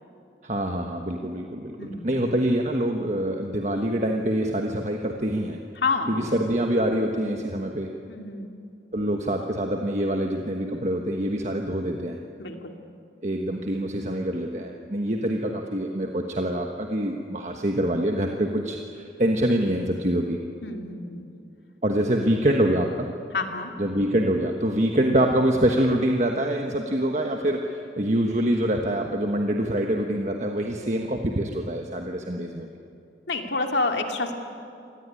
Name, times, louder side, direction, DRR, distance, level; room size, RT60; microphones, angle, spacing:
voice 1, 0.4-5.6 6.1-7.9 8.9-12.2 13.2-20.4 21.8-23.1 23.8-32.7, right 1 dB, 40° right, 2 dB, 1.3 m, -25 dB
voice 2, 1.8-2.2 5.8-6.4 8.1-8.5 12.4-12.7 20.6-21.3 23.3-23.7 33.3-34.3, left 3 dB, 70° left, 4 dB, 2.4 m, -28 dB
26.5 x 18.5 x 10.0 m, 2.6 s
head